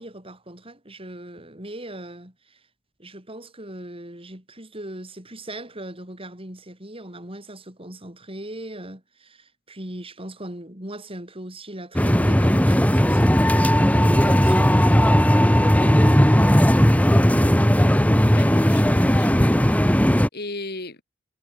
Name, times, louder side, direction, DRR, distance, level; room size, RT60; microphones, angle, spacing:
voice 1, 0.0-2.6 3.0-15.3 16.3-17.7, right 1 dB, 30° right, 7.4 m, -39 dB
sound 1, 11.9-20.3, equal, 5° left, 2.2 m, -17 dB
voice 2, 15.8-16.2 18.3-21.0, left 2 dB, 50° left, 7.8 m, -38 dB
head